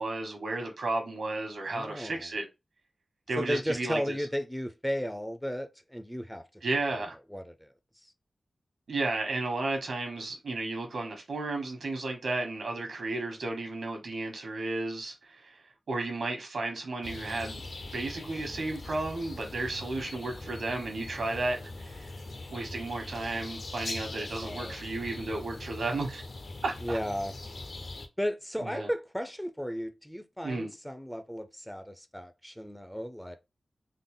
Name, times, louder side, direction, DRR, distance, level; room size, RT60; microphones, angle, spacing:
voice 1, 0.0-2.4 3.3-4.1 6.6-7.1 8.9-15.6 15.9-17.6 17.9-22.1 22.5-26.2 26.6-27.0 28.6-28.9 30.4-30.7, right 2 dB, 80° right, 1.2 m, -33 dB
voice 2, 1.7-2.3 3.4-6.4 7.3-7.7 24.2-24.8 26.8-27.3 28.2-33.4, equal, 5° left, 0.4 m, -34 dB
sound 1, 17.0-28.1, left 2 dB, 55° left, 0.6 m, -42 dB
3.8 x 2.0 x 3.6 m
wide cardioid pair, 115°, 0 cm